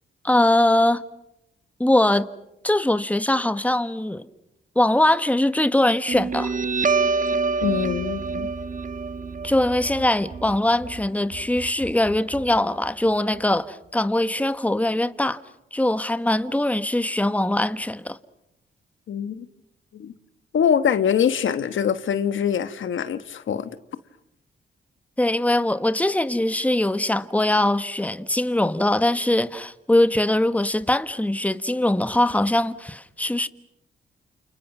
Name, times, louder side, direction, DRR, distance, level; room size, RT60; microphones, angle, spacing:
voice 1, 0.2-1.0 1.8-2.3 2.6-4.3 4.7-6.5 9.4-15.4 15.7-18.2 25.2-33.5, left 1 dB, 5° left, 1.4 m, -22 dB
Guitar, 6.1-13.1, right 4 dB, 40° right, 1.4 m, -27 dB
voice 2, 7.6-8.5 19.1-19.4 19.9-20.1 20.5-23.7, left 8 dB, 75° left, 1.4 m, -23 dB
29.5 x 29.0 x 6.0 m
cardioid pair, 65°, 20 cm